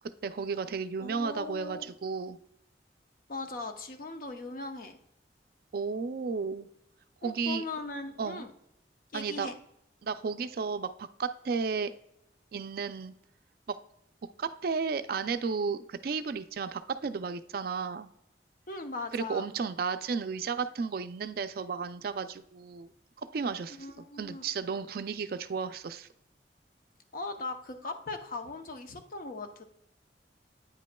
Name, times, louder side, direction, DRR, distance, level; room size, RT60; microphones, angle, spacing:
voice 1, 0.2-2.4 5.7-6.7 7.2-7.6 8.2-8.4 9.1-9.5 10.0-11.9 12.5-13.1 13.7-13.8 14.4-18.1 19.1-22.9 23.2-23.9 24.2-26.1, right 5 dB, 55° right, 11 dB, 0.4 m, -33 dB
voice 2, 1.0-1.9 3.3-5.0 7.2-8.5 9.1-9.5 18.7-19.4 23.8-24.5 27.1-29.6, left 3 dB, 50° left, 6 dB, 0.7 m, -39 dB
9.0 x 5.2 x 2.2 m, 0.78 s
head